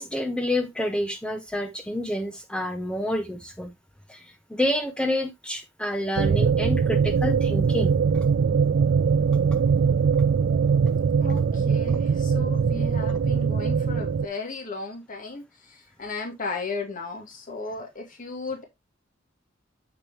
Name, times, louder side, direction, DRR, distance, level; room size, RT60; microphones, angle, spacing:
voice 1, 0.0-3.7 4.1-8.0, left 1 dB, 5° left, 0.7 m, -28 dB
sound 1, 6.2-14.3, right 6 dB, 55° right, 0.3 m, -22 dB
voice 2, 11.2-18.6, left 3 dB, 40° left, 2.6 m, -35 dB
8.0 x 6.6 x 3.0 m
head